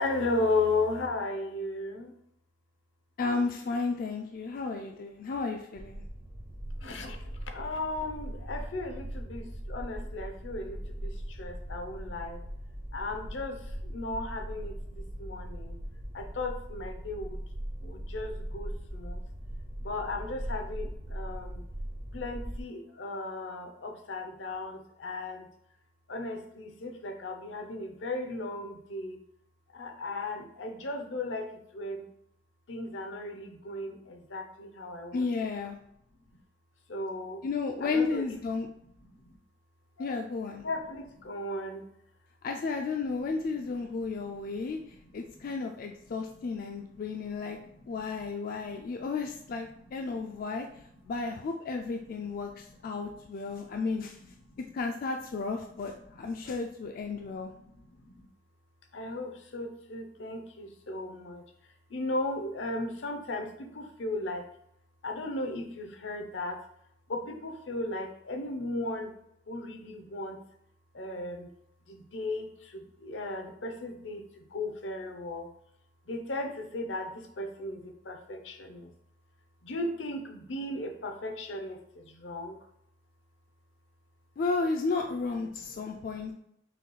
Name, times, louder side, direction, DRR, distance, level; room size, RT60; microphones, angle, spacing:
voice 1, 0.0-2.1 6.8-12.4 12.9-15.8 16.1-17.4 17.8-19.2 19.8-21.6 22.1-25.5 26.1-29.2 29.7-32.0 32.7-35.3 36.9-37.4 37.8-38.4 39.0-39.4 40.0-40.1 40.6-41.9 44.3-44.8 45.0-45.5 46.4-46.5 46.9-48.3 48.6-49.0 49.7-49.9 50.2-50.4 50.7-50.8 52.2-52.3 53.5-53.8 54.5-54.7 56.1-56.2 57.2-58.3 58.9-61.4 61.9-64.4 65.0-66.6 67.1-69.1 69.5-70.4 70.9-71.5 71.9-75.5 76.1-78.9 79.6-82.6, left 2 dB, 75° left, 5 dB, 0.7 m, -36 dB
voice 2, 3.2-6.0 35.1-35.8 37.4-38.7 40.0-40.7 42.4-44.8 45.1-47.6 47.9-50.7 51.0-54.2 54.7-57.5 84.4-86.3, left 4 dB, 50° left, 3 dB, 0.3 m, -33 dB
sound 1, 5.8-22.6, right 1 dB, 50° right, 0.6 m, -40 dB
5.6 x 2.3 x 3.1 m, 0.74 s
head